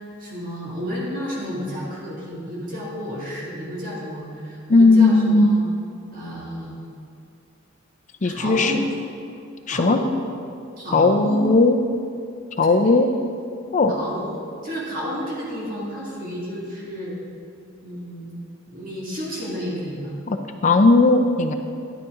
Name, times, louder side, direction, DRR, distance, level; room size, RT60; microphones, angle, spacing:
voice 1, 0.2-5.6 6.1-6.9 8.2-8.9 9.7-10.2 10.8-11.5 12.8-13.0 13.9-17.2 17.8-18.4 18.7-20.2, equal, 45° right, -6 dB, 2.3 m, -31 dB
voice 2, 4.7-5.5 8.2-8.8 9.7-10.0 10.9-11.8 12.6-13.1 13.7-13.9 20.3-20.4 20.6-21.5, left 3 dB, 35° left, 7 dB, 0.5 m, -16 dB
11.0 x 8.7 x 3.7 m, 2.5 s
head